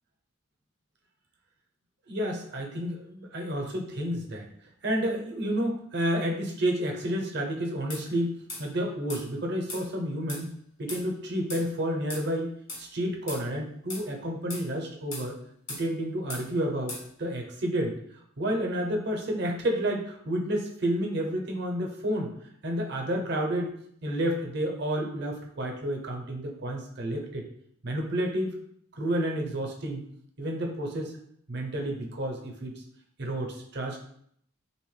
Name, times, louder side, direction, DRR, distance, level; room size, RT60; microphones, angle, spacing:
voice 1, 2.1-4.5 4.8-8.3 8.6-10.5 10.8-15.4 15.7-18.0 18.4-22.3 22.6-23.7 24.0-27.4 27.8-28.6 28.9-30.0 30.4-31.1 31.5-32.8 33.2-34.0, right 1 dB, 55° right, 1 dB, 0.7 m, -30 dB
sound 1, 7.9-8.0 8.5-8.6 9.1-9.2 9.7-9.8 10.3-10.4 10.9-11.0 11.5-11.6 12.1-12.2 12.7-12.8 13.3-13.4 13.9-14.1 14.5-14.7 15.1-15.3 15.7-15.8 16.3-16.4 16.9-17.0, left 2 dB, 85° left, 1.5 m, -38 dB
3.4 x 2.8 x 3.2 m, 0.67 s
head